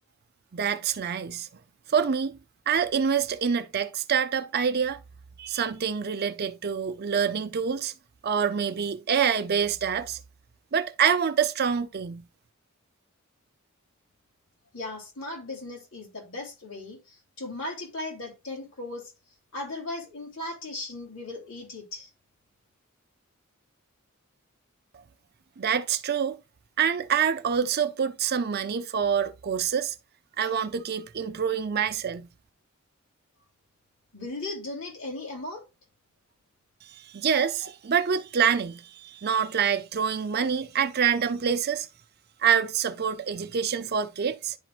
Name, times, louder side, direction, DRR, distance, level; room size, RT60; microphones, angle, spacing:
voice 1, 0.5-1.5 1.9-2.4 2.7-5.0 5.4-7.9 8.2-10.2 10.7-12.2 25.6-26.4 26.8-29.9 30.4-32.3 36.9-41.9 42.4-44.6, right 7 dB, 50° right, 0.5 m, -26 dB
voice 2, 14.7-19.1 19.5-22.1 34.1-35.6, left 2 dB, 70° left, 3.0 m, -37 dB
11.0 x 4.6 x 2.4 m
head